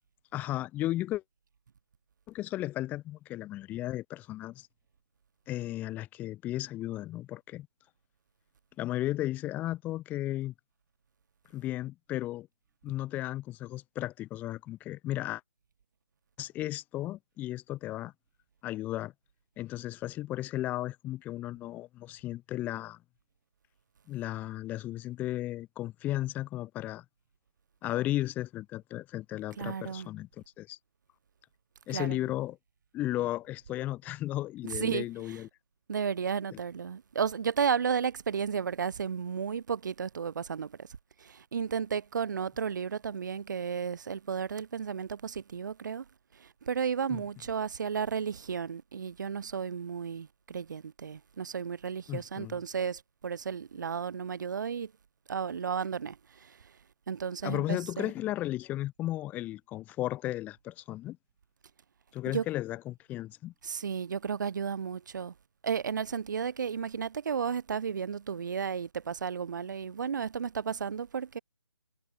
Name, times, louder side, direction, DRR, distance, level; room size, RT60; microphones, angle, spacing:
voice 1, 0.3-1.2 2.3-4.7 5.5-7.7 8.8-10.5 11.5-12.5 12.8-15.4 16.4-18.1 18.6-19.1 19.6-23.0 24.1-27.0 27.8-30.3 30.6-30.8 31.9-32.6 32.9-35.5 36.5-36.6 47.1-47.2 52.1-52.6 57.4-61.2 62.1-63.5, left 15 dB, 10° left, 2.8 m, -35 dB
voice 2, 29.6-30.1 31.9-32.2 34.7-35.4 35.9-40.9 41.2-46.0 46.4-54.9 55.3-56.6 57.1-58.1 62.3-62.4 63.6-65.3 65.6-71.4, right 7 dB, 40° right, 2.9 m, -33 dB
figure-of-eight pair, 150°, 14 cm